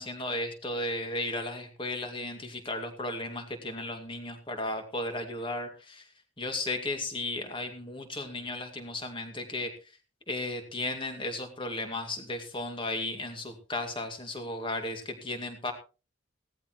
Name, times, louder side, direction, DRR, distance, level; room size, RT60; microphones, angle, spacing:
voice 1, 0.0-6.1 6.4-9.7 10.3-15.7, left 2 dB, 25° left, 5 dB, 2.3 m, -35 dB
17.5 x 14.0 x 3.1 m, 0.34 s
head